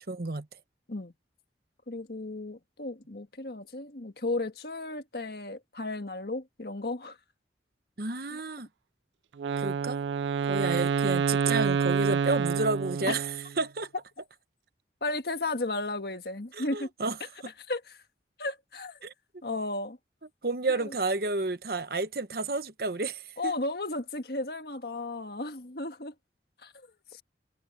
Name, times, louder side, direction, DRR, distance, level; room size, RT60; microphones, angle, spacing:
voice 1, 0.1-0.5 8.0-8.7 9.6-10.0 10.4-13.9 16.5-17.2 17.4-17.5 19.0-19.1 20.4-23.5, right 3 dB, 55° right, 1.1 m, -31 dB
voice 2, 1.9-7.1 8.3-8.4 15.0-16.9 17.7-17.8 18.4-19.0 19.4-20.0 20.7-20.8 23.4-26.1 26.6-26.7, left 2 dB, 60° left, 1.6 m, -34 dB
Wind instrument woodwind instrument, 9.4-13.6, right 6 dB, 90° right, 0.3 m, -28 dB
head